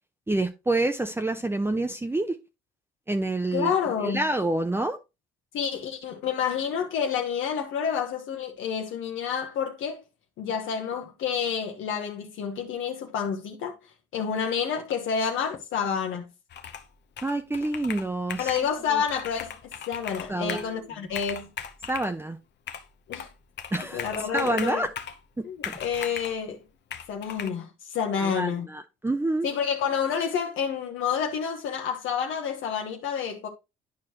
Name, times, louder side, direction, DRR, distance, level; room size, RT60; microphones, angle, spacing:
voice 1, 0.3-2.4 3.1-3.7 4.0-5.0 17.2-18.5 18.9-19.0 20.3-20.7 21.9-22.4 23.7-24.1 24.3-24.9 25.7-25.8 28.2-29.5, right 2 dB, 10° right, 0.7 m, -27 dB
voice 2, 3.5-4.2 5.5-10.0 10.4-13.7 14.1-16.3 18.4-21.5 23.1-23.3 23.9-24.8 25.4-26.6 27.1-28.7 29.4-33.5, left 7 dB, 80° left, 1.1 m, -29 dB
Computer keyboard, 16.5-16.9 17.2-18.7 19.1-20.7 21.1-22.1 22.7-23.3 23.6-25.2 25.6-26.4 26.9-27.5, left 8 dB, 60° left, 0.8 m, -38 dB
10.5 x 4.8 x 2.9 m
cardioid pair, 90°, 20 cm